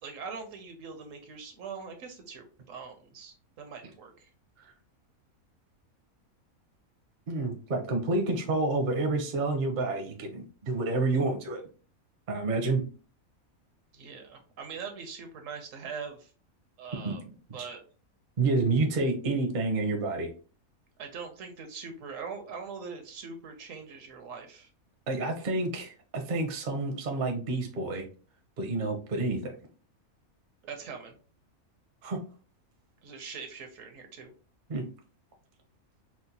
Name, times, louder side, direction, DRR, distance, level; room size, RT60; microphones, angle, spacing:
voice 1, 0.0-4.3 13.9-16.3 16.8-17.2 17.5-17.8 21.0-24.7 30.6-31.1 33.0-34.3, right 5 dB, 70° right, 5 dB, 1.0 m, -42 dB
voice 2, 7.3-11.6 12.3-12.8 16.9-17.7 18.4-20.3 25.1-28.1 28.6-29.5 32.0-32.2 34.7-34.8, right 3 dB, 45° right, 3 dB, 0.7 m, -29 dB
4.4 x 2.1 x 2.7 m, 0.38 s
omnidirectional pair, 1.5 m